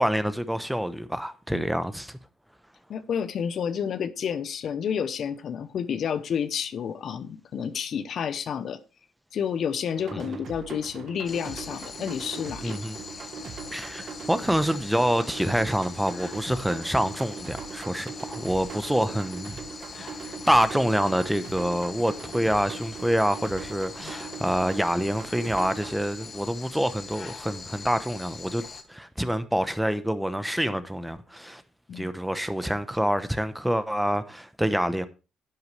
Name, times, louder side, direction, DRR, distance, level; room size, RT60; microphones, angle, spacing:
voice 1, 0.0-2.2 10.1-10.4 12.6-13.0 13.7-19.5 20.2-28.6 28.9-31.6 31.9-35.1, equal, 5° right, 0.9 m, -26 dB
voice 2, 2.9-8.8 9.3-12.8 16.5-16.6 24.0-24.1 31.9-32.1, left 7 dB, 60° left, 0.8 m, -30 dB
sound 1, 9.9-25.9, right 5 dB, 60° right, 1.2 m, -41 dB
sound 2, 11.3-28.8, left 5 dB, 40° left, 1.2 m, -42 dB
10.5 x 7.9 x 3.2 m
cardioid pair, 85°, 0 cm